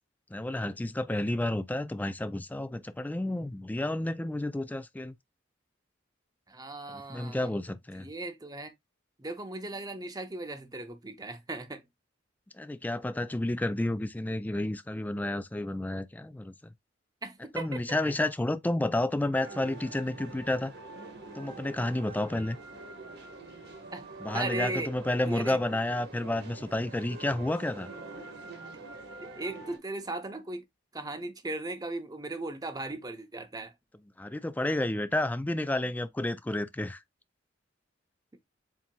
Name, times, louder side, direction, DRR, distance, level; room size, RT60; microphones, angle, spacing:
voice 1, 0.3-5.1 6.9-8.1 12.6-16.5 17.5-20.7 21.4-22.6 24.2-27.9 34.2-37.0, left 1 dB, 10° left, 0.3 m, -31 dB
voice 2, 6.5-7.5 7.9-8.7 9.2-11.8 17.2-18.1 23.9-24.1 24.3-24.9 25.2-25.6 29.2-30.6 30.9-33.7, right 2 dB, 20° right, 0.7 m, -37 dB
sound 1, 19.3-29.8, right 3 dB, 60° right, 1.2 m, -45 dB
7.3 x 2.7 x 2.2 m
head